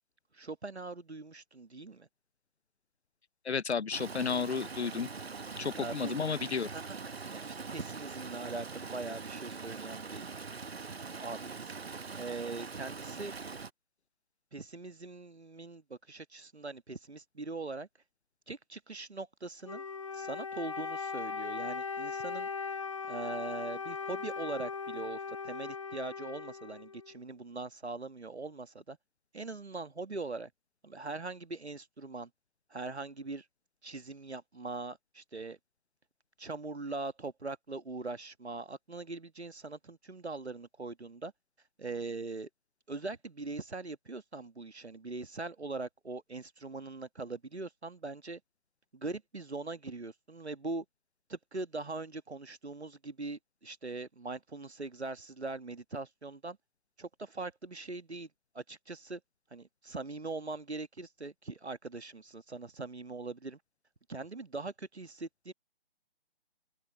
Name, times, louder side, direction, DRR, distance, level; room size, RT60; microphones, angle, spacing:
voice 1, 0.3-2.1 5.8-6.1 6.7-7.0 7.3-10.3 11.2-11.6 12.1-13.3 14.5-17.9 18.5-19.8 20.1-22.5 23.1-29.0 29.3-30.5 30.8-32.3 32.7-33.4 33.8-35.6 36.4-41.3 41.8-42.5 42.9-48.4 48.9-50.8 51.3-56.6 57.0-58.3 58.5-59.2 59.5-63.6 64.1-65.5, right 3 dB, 85° right, 1.5 m, -41 dB
voice 2, 3.5-5.1 5.6-6.7, left 5 dB, 90° left, 0.6 m, -32 dB
Stream, 3.9-13.7, right 4 dB, 70° right, 1.3 m, -43 dB
Wind instrument woodwind instrument, 19.6-27.2, left 5 dB, 30° left, 0.5 m, -39 dB
figure-of-eight pair, 145°, 32 cm